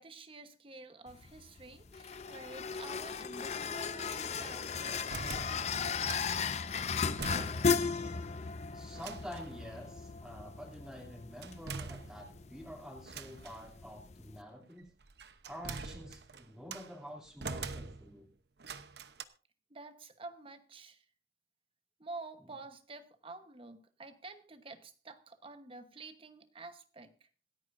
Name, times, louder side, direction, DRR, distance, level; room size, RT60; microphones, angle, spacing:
voice 1, 0.0-5.8 19.7-21.0 22.0-27.3, right 3 dB, 30° right, 1.1 m, -49 dB
sound 1, 1.1-14.4, left 5 dB, 40° left, 0.6 m, -36 dB
sound 2, 4.8-6.4 6.8-7.9 8.2-8.3 8.9-9.6 11.4-12.5 13.1-13.7 14.8-16.9 17.4-18.2 18.6-19.2, right 4 dB, 70° right, 0.9 m, -44 dB
voice 2, 8.7-14.9 15.4-18.3, equal, 5° right, 2.9 m, -48 dB
26.5 x 9.0 x 2.6 m
head